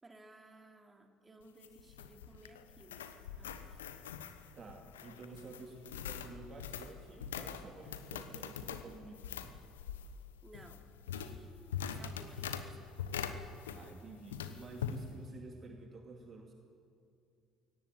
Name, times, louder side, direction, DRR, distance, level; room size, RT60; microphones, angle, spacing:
voice 1, 0.0-3.8 5.6-6.0 10.4-10.9 11.2-12.9, right 2 dB, 20° right, 4 dB, 2.9 m, -58 dB
sound 1, 1.4-14.0 14.3-15.0, left 8 dB, 75° left, 1.1 m, -43 dB
voice 2, 4.5-9.5 13.7-16.5, right 3 dB, 40° right, 3 dB, 2.3 m, -51 dB
23.0 x 17.5 x 9.1 m, 2.5 s
figure-of-eight pair, 55°, 0 cm